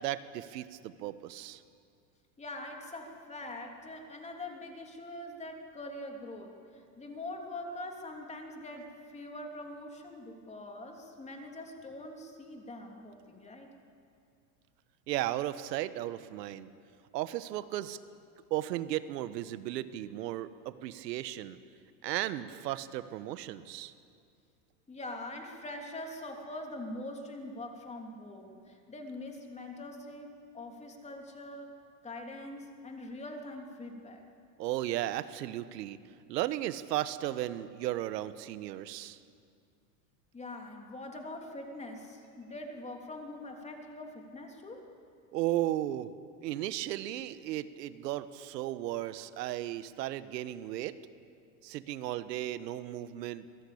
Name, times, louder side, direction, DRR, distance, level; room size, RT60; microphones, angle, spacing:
voice 1, 0.0-1.6 15.1-16.7 17.1-18.0 18.5-21.6 22.0-23.9 34.6-36.0 36.3-39.2 45.3-46.1 46.4-51.0 51.6-53.5, right 14 dB, 80° right, 14 dB, 1.4 m, -35 dB
voice 2, 2.4-6.5 7.0-13.7 24.9-31.7 32.0-34.2 40.3-44.8, left 1 dB, 15° left, 2 dB, 3.2 m, -43 dB
25.5 x 18.0 x 8.6 m, 2.3 s
supercardioid pair, 135°, 49 cm